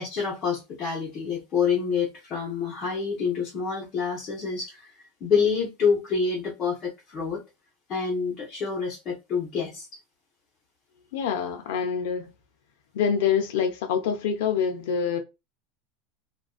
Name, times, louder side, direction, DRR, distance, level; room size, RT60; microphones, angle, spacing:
voice 1, 0.0-7.4 7.9-9.9, left 5 dB, 30° left, 0.7 m, -27 dB
voice 2, 11.1-12.3 12.9-15.2, left 7 dB, 75° left, 0.5 m, -26 dB
2.4 x 2.2 x 2.3 m
supercardioid pair, 170°, 0 cm